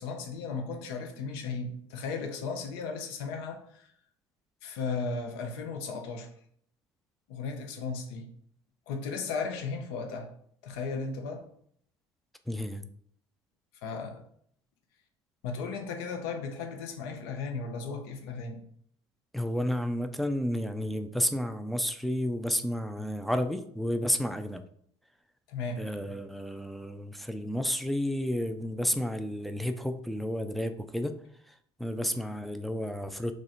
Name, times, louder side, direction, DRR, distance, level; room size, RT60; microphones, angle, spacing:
voice 1, 0.0-3.9 4.6-6.3 7.3-8.3 8.9-10.3 10.6-11.5 13.8-14.2 15.4-18.6 25.5-25.9, left 4 dB, 60° left, 5 dB, 0.7 m, -35 dB
voice 2, 12.5-12.8 19.3-24.6 25.8-31.1 31.5-33.3, equal, ahead, 8 dB, 0.4 m, -31 dB
3.6 x 3.2 x 4.1 m, 0.64 s
figure-of-eight pair, 60°, 14 cm